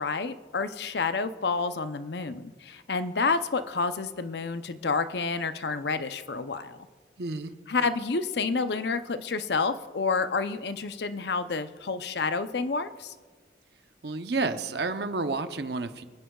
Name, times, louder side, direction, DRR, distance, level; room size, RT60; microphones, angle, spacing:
voice 1, 0.0-6.8 7.7-13.1, left 4 dB, 70° left, 11 dB, 0.6 m, -29 dB
voice 2, 7.2-7.5 14.0-16.0, right 3 dB, 65° right, 9 dB, 0.8 m, -30 dB
25.0 x 10.0 x 2.3 m, 1.5 s
head